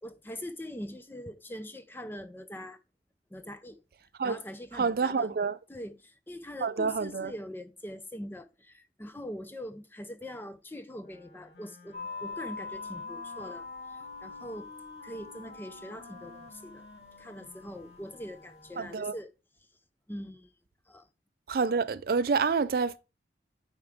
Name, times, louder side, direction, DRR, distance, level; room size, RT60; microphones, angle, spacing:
voice 1, 0.0-2.8 3.3-3.8 4.2-5.3 5.7-14.7 15.0-16.9 17.2-19.3 20.1-20.5 20.9-21.1, left 1 dB, 10° left, 0.5 m, -42 dB
voice 2, 4.7-5.6 6.6-7.3 18.8-19.2 21.5-23.0, right 5 dB, 55° right, 0.4 m, -28 dB
Wind instrument woodwind instrument, 11.0-19.1, left 2 dB, 85° left, 1.6 m, -53 dB
sound 1, 11.9-19.1, left 4 dB, 40° left, 1.6 m, -44 dB
8.8 x 4.5 x 3.5 m
head